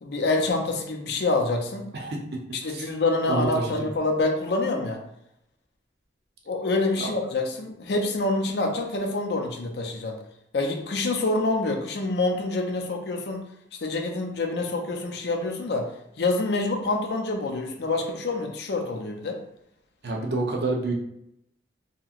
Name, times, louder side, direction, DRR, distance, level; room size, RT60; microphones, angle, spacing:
voice 1, 0.0-1.8 2.5-5.0 6.5-10.2 10.5-13.4 13.8-15.9 16.2-19.4, left 2 dB, 70° left, 3 dB, 0.5 m, -26 dB
voice 2, 1.9-2.4 2.7-2.9 3.3-3.9 20.0-20.9, right 2 dB, 65° right, 0 dB, 0.6 m, -28 dB
2.9 x 2.8 x 2.4 m, 0.78 s
head